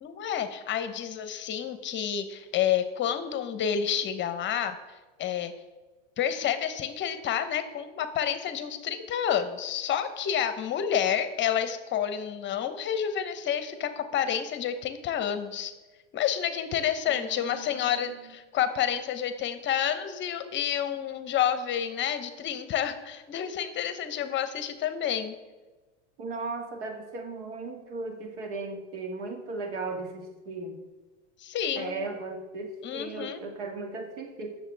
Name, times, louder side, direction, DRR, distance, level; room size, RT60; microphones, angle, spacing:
voice 1, 0.0-4.8 5.2-5.5 6.2-15.7 16.1-25.3 31.4-32.0 32.8-33.4, left 9 dB, 35° left, 10 dB, 0.9 m, -29 dB
voice 2, 17.1-18.2 26.2-30.8 31.8-34.6, right 3 dB, 75° right, 3 dB, 2.2 m, -37 dB
20.0 x 6.8 x 3.4 m, 1.2 s
supercardioid pair, 115°, 35 cm